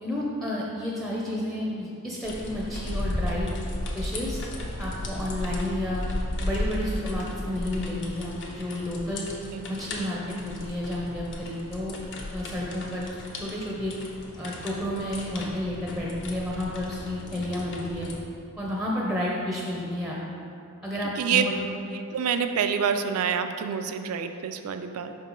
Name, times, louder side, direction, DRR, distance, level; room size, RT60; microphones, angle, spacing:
voice 1, 0.0-3.6 3.9-4.4 4.8-6.0 6.4-9.3 9.7-12.0 12.3-13.1 13.4-13.9 14.3-18.1 18.6-20.2 20.8-21.6, left 1 dB, ahead, -4 dB, 0.5 m, -31 dB
sound 1, 2.2-18.2, left 1 dB, 55° left, 0.7 m, -35 dB
voice 2, 21.2-21.5 21.9-25.2, right 7 dB, 75° right, 8 dB, 0.4 m, -27 dB
5.3 x 4.6 x 3.9 m, 2.6 s
head